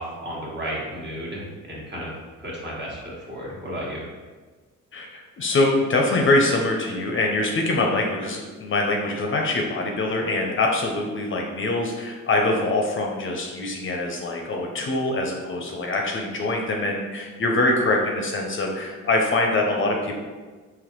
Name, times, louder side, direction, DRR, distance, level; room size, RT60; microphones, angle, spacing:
voice 1, 0.0-2.1 2.4-4.0, equal, 35° right, -5 dB, 1.4 m, -33 dB
voice 2, 4.9-20.2, left 2 dB, 40° left, 1 dB, 0.6 m, -24 dB
4.0 x 2.9 x 3.0 m, 1.4 s
cardioid pair, 90°, 30 cm